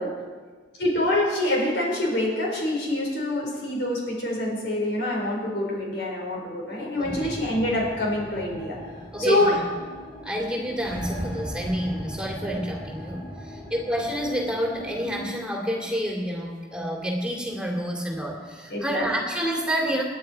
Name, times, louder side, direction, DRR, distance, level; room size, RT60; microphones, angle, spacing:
voice 1, 0.8-8.8 9.2-9.6 12.4-12.5 18.7-19.0, left 1 dB, 70° left, -2 dB, 5.1 m, -26 dB
sound 1, 7.0-15.4, equal, 10° left, 5.0 m, -38 dB
voice 2, 7.0-7.3 9.1-9.7 10.2-20.0, equal, 5° right, -1 dB, 2.6 m, -29 dB
28.0 x 10.0 x 4.7 m, 1.5 s
head